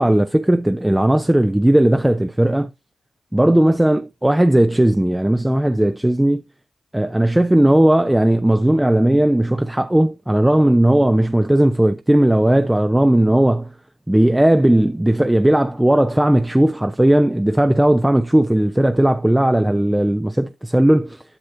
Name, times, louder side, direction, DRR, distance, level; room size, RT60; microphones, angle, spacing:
voice 1, 0.0-2.7 3.3-6.4 6.9-13.7 14.1-21.2, right 1 dB, 10° right, 0.5 m, -16 dB
9.7 x 6.6 x 2.6 m
supercardioid pair, 50°, 0 cm